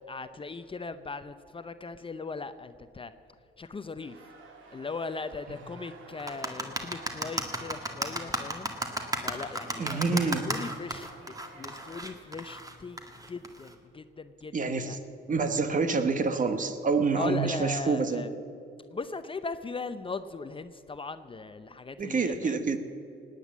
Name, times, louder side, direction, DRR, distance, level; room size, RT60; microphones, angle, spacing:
voice 1, 0.1-3.1 3.6-4.1 4.7-8.7 9.2-11.1 11.5-13.0 13.3-14.5 14.8-15.0 17.2-18.3 18.9-22.7, left 4 dB, 25° left, 11 dB, 0.7 m, -38 dB
sound 1, 4.0-12.0, right 4 dB, 85° right, 2.3 m, -51 dB
sound 2, 6.2-13.7, right 1 dB, 15° right, 1.8 m, -33 dB
voice 2, 9.8-10.4 14.5-15.0 15.3-18.3 22.0-22.8, right 4 dB, 40° right, 9 dB, 1.3 m, -27 dB
18.5 x 9.2 x 7.4 m, 2.7 s
cardioid pair, 90°, 20 cm